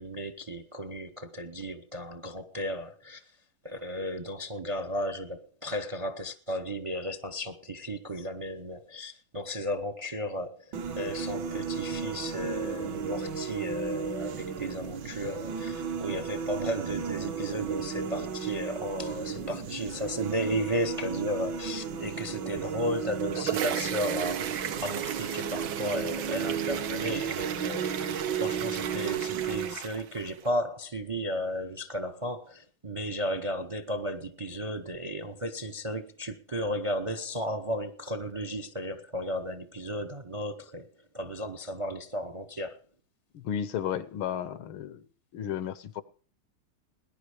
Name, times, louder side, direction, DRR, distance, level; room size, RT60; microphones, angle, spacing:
voice 1, 0.0-3.2 3.6-28.1 28.4-40.9 41.1-42.8, equal, 40° right, 0.4 m, -34 dB
sound 1, 10.7-29.7, right 6 dB, 65° right, 1.7 m, -34 dB
sound 2, 23.0-30.5, right 9 dB, 80° right, 1.8 m, -36 dB
voice 2, 43.3-45.1 45.3-46.0, left 9 dB, 85° left, 1.8 m, -33 dB
19.0 x 10.5 x 4.9 m
omnidirectional pair, 2.2 m